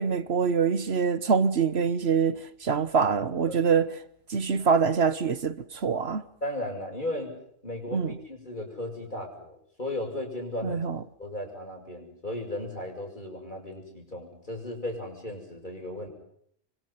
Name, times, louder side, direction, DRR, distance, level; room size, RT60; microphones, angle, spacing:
voice 1, 0.0-3.9 4.3-6.2 7.9-8.1 10.6-11.0, right 6 dB, 65° right, 1.4 m, -25 dB
voice 2, 6.4-7.4 7.6-10.8 11.2-16.1, left 1 dB, 45° left, 7.3 m, -35 dB
27.0 x 24.5 x 5.8 m
omnidirectional pair, 1.2 m